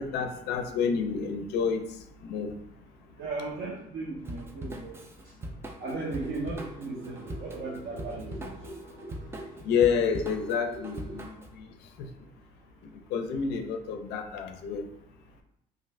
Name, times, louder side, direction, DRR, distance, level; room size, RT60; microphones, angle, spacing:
voice 1, 0.0-1.8 2.2-2.5 9.6-11.6 12.0-12.1 13.1-14.8, left 6 dB, 80° left, 6 dB, 0.4 m, -29 dB
voice 2, 3.2-5.0 5.8-8.5, right 3 dB, 65° right, -3 dB, 0.6 m, -36 dB
Drum kit / Drum, 4.2-11.6, right 1 dB, 15° right, 0.3 m, -41 dB
sound 1, 5.8-11.2, right 1 dB, 90° right, 1.0 m, -45 dB
2.5 x 2.5 x 3.2 m, 0.75 s
cardioid pair, 110°, 17 cm